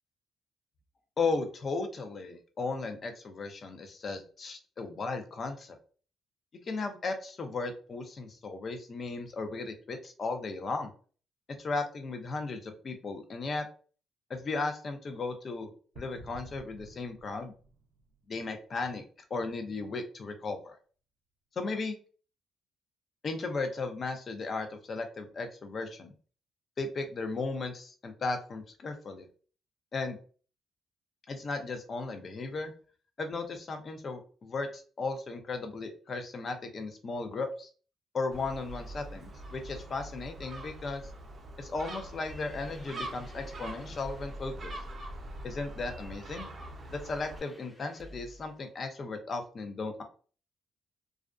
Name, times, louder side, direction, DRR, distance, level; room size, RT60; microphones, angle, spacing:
voice 1, 1.2-5.8 6.6-10.9 11.6-13.6 14.3-17.5 18.3-19.0 19.3-20.8 21.6-22.0 23.2-26.1 26.8-29.3 29.9-30.2 31.3-32.7 33.2-37.7 38.1-41.1 41.6-44.7 45.4-46.5 46.9-50.0, left 3 dB, 45° left, 6 dB, 0.5 m, -36 dB
sound 1, 15.9-18.6, right 2 dB, 90° right, 0.4 m, -52 dB
Gull seagull, 38.3-47.4, right 1 dB, 45° right, 0.6 m, -44 dB
sound 2, 42.1-48.6, equal, 5° left, 0.6 m, -49 dB
2.4 x 2.2 x 2.4 m, 0.40 s
cardioid pair, 90°, 0 cm